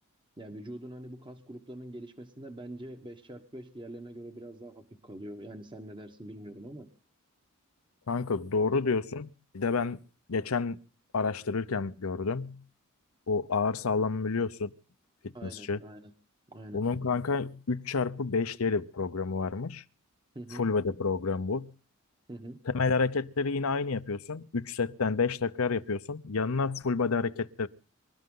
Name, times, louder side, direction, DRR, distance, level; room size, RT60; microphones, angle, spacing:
voice 1, 0.4-6.9 8.7-8.8 15.3-16.1 16.5-16.8 20.3-20.6 22.3-22.6, right 1 dB, 20° right, 1.2 m, -44 dB
voice 2, 8.1-10.0 10.3-10.8 11.1-12.6 13.3-14.7 15.4-15.8 16.7-19.8 20.5-21.7 22.7-27.7, left 4 dB, 80° left, 0.7 m, -29 dB
25.5 x 12.5 x 3.8 m
head